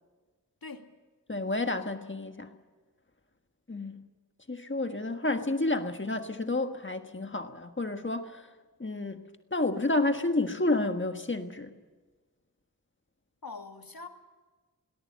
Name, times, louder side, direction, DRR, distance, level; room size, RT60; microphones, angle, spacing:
voice 1, 0.6-1.0 13.4-14.1, left 4 dB, 75° left, 5 dB, 2.0 m, -43 dB
voice 2, 1.3-2.5 3.7-4.0 4.5-8.5 8.8-9.2 9.5-11.7, left 2 dB, 35° left, 6 dB, 1.5 m, -30 dB
22.0 x 18.5 x 7.5 m, 1.3 s
wide cardioid pair, 70°, 36 cm